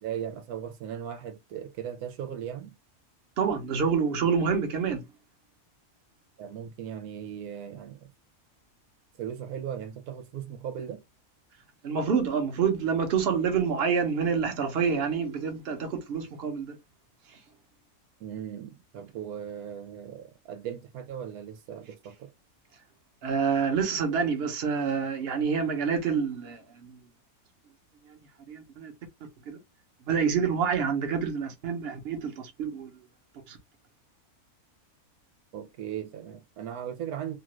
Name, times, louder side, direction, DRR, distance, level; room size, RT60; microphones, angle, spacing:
voice 1, 0.0-2.7 6.4-8.1 9.2-11.0 18.2-22.3 35.5-37.4, right 9 dB, 85° right, 1.2 m, -38 dB
voice 2, 3.4-5.1 11.8-16.8 17.3-17.4 23.2-27.0 28.1-28.2 28.5-28.9 29.5-29.6 30.1-32.9 33.5-33.6, right 6 dB, 50° right, 0.9 m, -27 dB
2.9 x 2.4 x 3.0 m
omnidirectional pair, 1.6 m